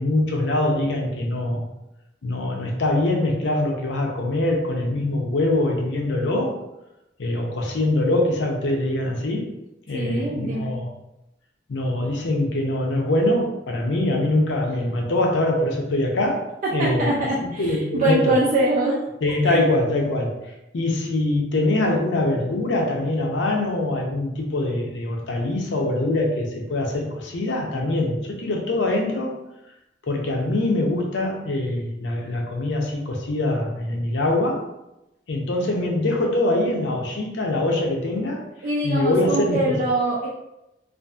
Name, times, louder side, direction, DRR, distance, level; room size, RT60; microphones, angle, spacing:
voice 1, 0.0-1.7 2.2-6.6 7.2-9.5 9.9-10.9 11.7-16.4 16.7-17.1 17.4-18.3 19.2-20.3 20.7-29.4 30.1-34.6 35.3-38.4 38.8-39.8, left 1 dB, 80° left, 0 dB, 0.6 m, -23 dB
voice 2, 9.9-10.7 16.6-19.0 19.4-19.6 38.6-40.3, right 1 dB, 50° right, -5 dB, 0.4 m, -23 dB
2.6 x 2.5 x 2.3 m, 0.91 s
head